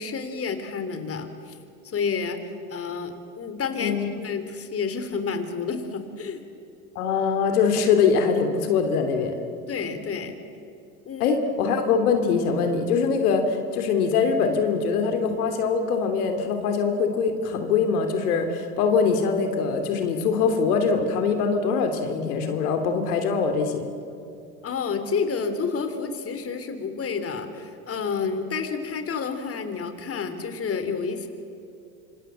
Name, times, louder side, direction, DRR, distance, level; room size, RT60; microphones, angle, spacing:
voice 1, 0.0-1.6 1.8-2.4 2.7-6.4 9.7-10.3 11.1-11.4 24.6-31.3, left 5 dB, 30° left, 8 dB, 3.5 m, -30 dB
voice 2, 6.9-9.4 11.2-23.9, left 5 dB, 75° left, 5 dB, 2.9 m, -23 dB
26.5 x 26.5 x 7.8 m, 2.6 s
hypercardioid pair, 90°, 45 cm